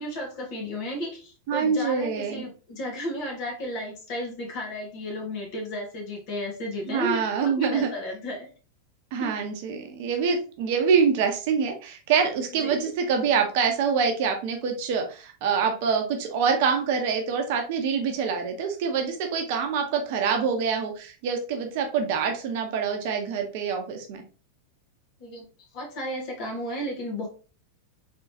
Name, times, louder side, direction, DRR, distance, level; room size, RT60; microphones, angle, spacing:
voice 1, 0.0-8.5 9.2-9.4 12.5-12.9 25.2-25.5 25.7-27.3, left 1 dB, 45° left, 1 dB, 1.7 m, -33 dB
voice 2, 1.5-2.4 6.9-7.9 9.1-24.2, right 6 dB, 50° right, 4 dB, 0.8 m, -25 dB
3.9 x 3.5 x 2.8 m, 0.36 s
figure-of-eight pair, 90°, 0 cm